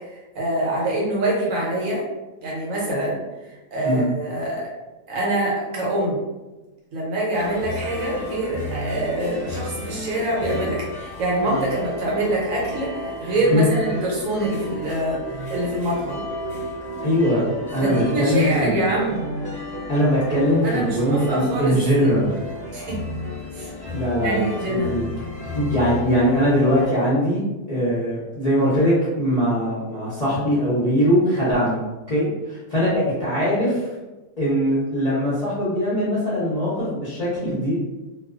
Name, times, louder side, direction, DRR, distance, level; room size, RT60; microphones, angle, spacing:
voice 1, 0.3-2.0 2.4-3.2 3.5-4.7 5.1-6.2 6.9-16.2 17.8-19.3 20.6-22.1 22.7-23.0 23.5-23.7 24.2-24.9, right 1 dB, 65° right, -4 dB, 1.0 m, -25 dB
sound 1, 7.3-26.9, left 1 dB, 20° left, 0.9 m, -33 dB
voice 2, 17.0-17.4 17.7-18.8 19.9-22.3 23.9-25.0 25.5-27.4 27.7-31.8 32.1-33.9 34.4-37.8, equal, 45° left, -11 dB, 0.5 m, -21 dB
2.4 x 2.2 x 2.4 m, 1.1 s
omnidirectional pair, 1.7 m